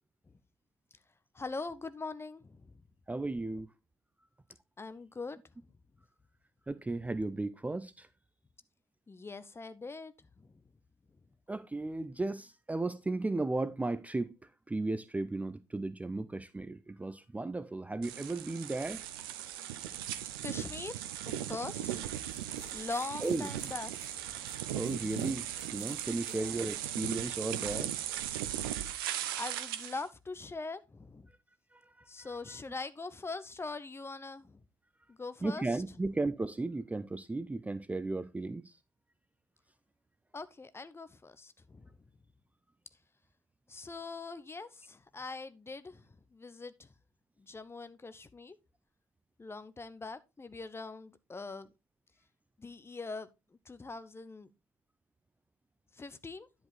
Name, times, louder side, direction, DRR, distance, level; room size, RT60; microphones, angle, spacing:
voice 1, 1.3-2.7 4.8-5.4 9.1-10.6 20.4-20.9 21.3-22.2 22.7-24.2 26.3-26.6 29.4-31.3 32.1-34.6 35.1-35.8 40.3-42.0 43.7-46.9 47.4-48.5 49.4-51.7 52.6-53.3 53.7-54.5 55.9-56.5, left 3 dB, 20° left, 0.8 m, -42 dB
voice 2, 3.1-3.7 6.7-8.1 11.5-14.3 14.7-19.0 23.2-23.5 24.7-25.4 25.7-28.0 31.7-31.8 32.2-32.3 35.4-38.7, right 2 dB, 10° right, 0.5 m, -35 dB
sound 1, 18.0-30.0, right 11 dB, 70° right, 0.6 m, -38 dB
sound 2, 22.3-28.5, left 6 dB, 75° left, 1.3 m, -59 dB
10.5 x 5.1 x 4.0 m
figure-of-eight pair, 45°, 12 cm